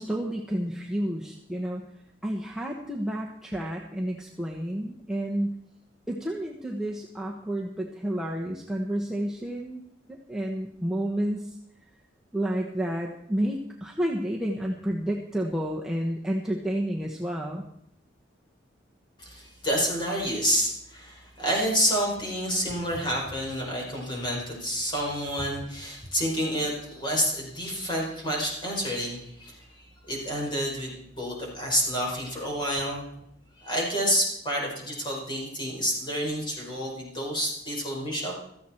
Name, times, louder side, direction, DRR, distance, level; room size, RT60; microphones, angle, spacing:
voice 1, 0.0-1.8 2.2-5.6 6.1-9.8 10.1-11.6 12.3-17.6, right 1 dB, 5° right, -2 dB, 1.1 m, -30 dB
voice 2, 19.2-29.7 30.1-33.1 33.6-38.3, equal, 25° left, -2 dB, 5.2 m, -29 dB
16.0 x 14.0 x 4.4 m, 0.74 s
head